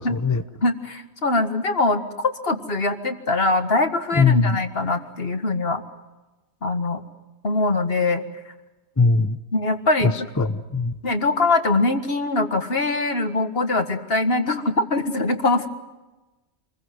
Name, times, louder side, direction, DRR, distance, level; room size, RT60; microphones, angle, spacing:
voice 1, 0.0-0.4 4.2-4.6 9.0-9.4 10.4-10.9, left 4 dB, 15° left, 9 dB, 0.6 m, -20 dB
voice 2, 0.6-5.8 6.6-7.0 7.4-8.2 9.5-10.5 11.0-15.7, left 2 dB, 45° left, 7 dB, 2.0 m, -22 dB
27.5 x 21.5 x 7.7 m, 1.1 s
omnidirectional pair, 1.5 m